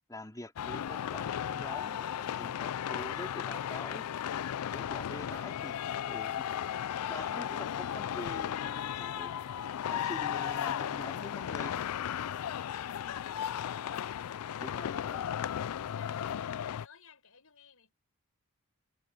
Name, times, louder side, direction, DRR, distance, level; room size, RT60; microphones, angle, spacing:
voice 1, 0.0-4.1 4.7-6.4 7.1-9.3 9.9-12.0 14.6-15.3, left 1 dB, 15° left, 2.9 m, -45 dB
sound 1, 0.6-16.9, left 9 dB, 85° left, 0.4 m, -35 dB
voice 2, 15.6-17.9, left 5 dB, 70° left, 6.7 m, -59 dB
head